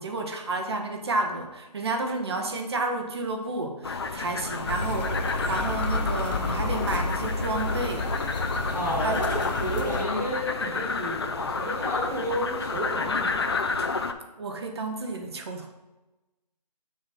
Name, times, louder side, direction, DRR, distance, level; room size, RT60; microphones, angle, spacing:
voice 1, 0.0-8.1 9.0-9.2 14.4-15.7, right 2 dB, 40° right, 4 dB, 0.8 m, -31 dB
sound 1, 3.8-14.1, left 4 dB, 40° left, 0.4 m, -30 dB
sound 2, 4.7-10.0, left 2 dB, 90° left, 0.9 m, -30 dB
voice 2, 8.7-13.6, equal, 15° left, -8 dB, 2.2 m, -31 dB
6.3 x 3.5 x 5.7 m, 1.0 s
figure-of-eight pair, 165°, 21 cm